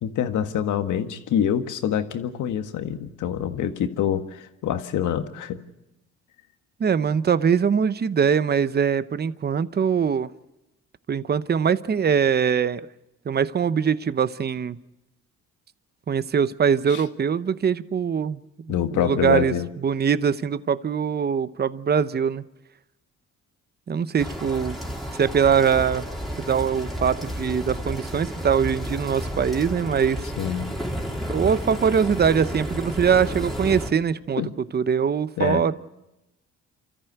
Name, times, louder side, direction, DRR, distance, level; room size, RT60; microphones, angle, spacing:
voice 1, 0.0-5.6 16.9-17.0 18.7-19.7 30.4-30.7 34.4-34.5 35.4-35.6, left 9 dB, 80° left, 8 dB, 1.7 m, -26 dB
voice 2, 6.8-10.3 11.1-12.8 13.3-14.8 16.1-18.4 18.6-22.4 23.9-24.8 25.2-26.0 26.4-30.2 31.3-35.7, right 7 dB, 35° right, 15 dB, 0.8 m, -22 dB
sound 1, 24.2-33.9, equal, ahead, 3.6 m, -31 dB
28.0 x 14.0 x 8.0 m, 0.95 s
cardioid pair, 90°, 30 cm